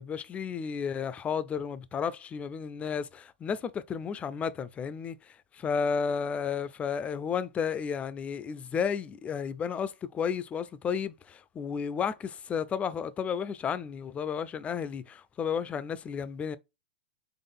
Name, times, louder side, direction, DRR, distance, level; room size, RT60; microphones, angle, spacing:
voice 1, 0.0-16.6, left 6 dB, 20° left, 0.4 m, -32 dB
4.0 x 3.6 x 3.5 m
hypercardioid pair, 115°, 6 cm